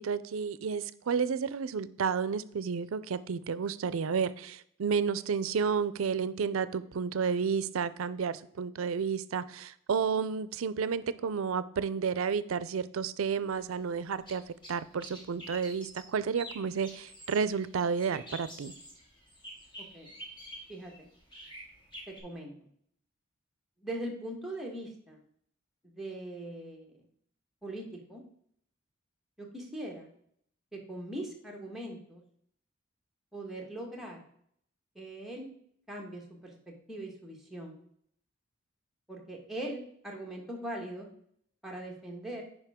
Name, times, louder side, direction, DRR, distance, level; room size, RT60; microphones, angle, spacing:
voice 1, 0.0-18.7, right 6 dB, 90° right, 0.4 m, -31 dB
sound 1, 13.5-22.2, equal, 25° left, 1.8 m, -48 dB
voice 2, 19.8-20.1 20.7-20.9 22.1-22.7 23.8-25.2 25.8-27.0 27.6-28.2 29.4-30.1 30.7-32.2 33.3-34.2 34.9-35.6 35.9-37.8 39.1-41.1 41.6-42.4, right 1 dB, ahead, 1.4 m, -41 dB
9.1 x 5.3 x 3.6 m
head